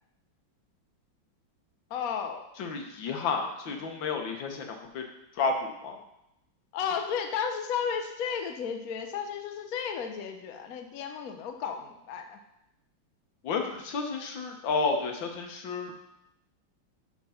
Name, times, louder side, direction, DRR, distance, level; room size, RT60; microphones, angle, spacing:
voice 1, 1.9-2.4 6.7-12.4, left 7 dB, 60° left, 5 dB, 1.0 m, -33 dB
voice 2, 2.6-5.0 5.4-6.0 13.4-15.9, left 4 dB, 75° left, 3 dB, 1.7 m, -31 dB
10.5 x 3.7 x 5.7 m, 0.84 s
omnidirectional pair, 2.1 m